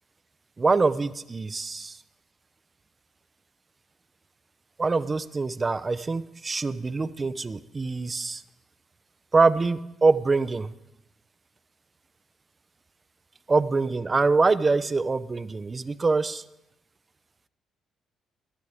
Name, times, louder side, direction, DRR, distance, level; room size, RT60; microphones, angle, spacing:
voice 1, 0.6-1.9 4.8-8.4 9.3-10.7 13.5-16.4, right 3 dB, 30° right, 14 dB, 0.7 m, -24 dB
21.0 x 13.0 x 3.6 m, 0.88 s
cardioid pair, 90°, 0 cm